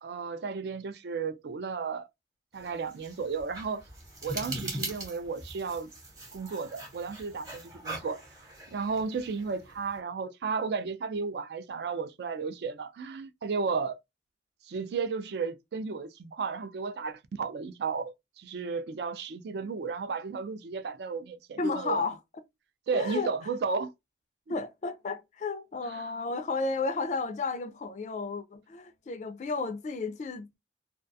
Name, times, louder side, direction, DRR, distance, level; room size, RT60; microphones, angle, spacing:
voice 1, 0.0-2.1 2.5-3.8 4.2-5.9 6.3-8.2 8.7-14.0 14.7-22.0 22.9-23.9, right 5 dB, 65° right, 0.3 m, -33 dB
sound 1, 2.6-10.0, right 2 dB, 20° right, 0.8 m, -41 dB
voice 2, 21.6-22.2 22.9-23.3 24.5-30.6, left 4 dB, 40° left, 0.3 m, -33 dB
2.3 x 2.2 x 2.6 m
head